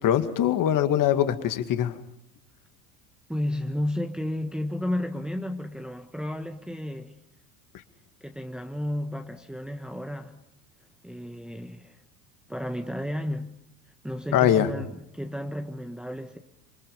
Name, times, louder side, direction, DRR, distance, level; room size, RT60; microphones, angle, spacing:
voice 1, 0.0-1.9 14.3-14.7, left 10 dB, 40° left, 2.2 m, -22 dB
voice 2, 3.3-7.2 8.2-10.4 11.0-12.0 12.5-13.6 14.0-16.4, left 1 dB, ahead, 1.5 m, -32 dB
27.5 x 24.5 x 5.4 m
hypercardioid pair, 80°, 48 cm